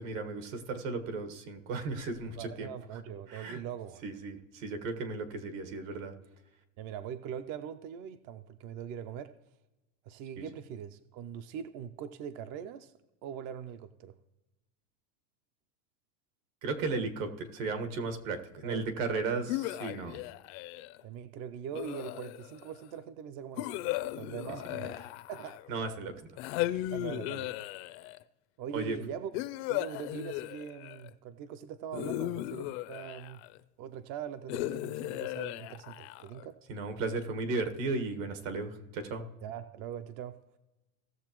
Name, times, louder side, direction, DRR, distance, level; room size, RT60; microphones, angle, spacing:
voice 1, 0.0-2.7 3.3-3.6 4.0-6.1 10.4-10.5 16.6-20.2 25.7-26.1 28.7-29.0 36.7-39.2, right 3 dB, 75° right, 7 dB, 1.5 m, -35 dB
voice 2, 2.2-4.0 6.8-9.3 10.0-12.9 13.2-14.1 18.6-18.8 21.0-25.8 26.9-27.6 28.6-29.3 29.7-33.4 33.8-36.6 39.4-40.4, right 8 dB, 40° right, 11 dB, 0.4 m, -42 dB
sound 1, 19.5-21.0 21.7-22.7 23.6-25.8 26.4-28.2 29.3-31.1 31.9-33.6 34.5-36.4, left 16 dB, 55° left, 0.5 m, -36 dB
17.5 x 6.9 x 3.0 m, 1.0 s
supercardioid pair, 155°, 40 cm